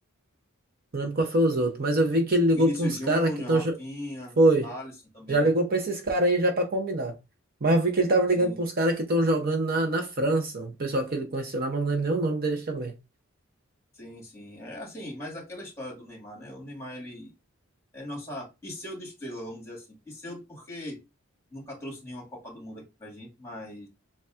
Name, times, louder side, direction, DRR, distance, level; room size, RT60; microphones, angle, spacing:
voice 1, 0.9-3.7 4.4-4.7 5.3-7.1 7.6-12.9, right 1 dB, 45° right, 0.7 m, -24 dB
voice 2, 2.5-4.3 4.6-5.5 8.4-8.6 13.9-17.3 17.9-21.0 21.5-23.9, left 1 dB, 15° left, 1.9 m, -39 dB
6.8 x 2.3 x 2.4 m
head